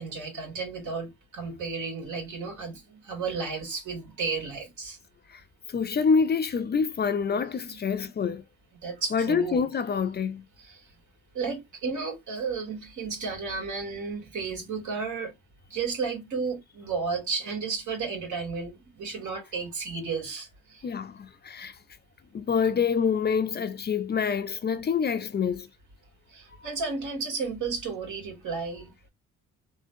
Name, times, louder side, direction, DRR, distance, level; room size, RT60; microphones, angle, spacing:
voice 1, 0.0-5.0 7.7-8.1 8.8-9.6 10.6-10.8 11.3-15.4 15.7-20.8 26.3-28.9, right 4 dB, 75° right, 2.4 m, -33 dB
voice 2, 5.7-8.4 9.1-10.4 20.8-21.8 22.3-25.7 26.6-26.7, left 6 dB, 35° left, 0.5 m, -26 dB
3.7 x 2.7 x 2.7 m
cardioid pair, 90°, 30 cm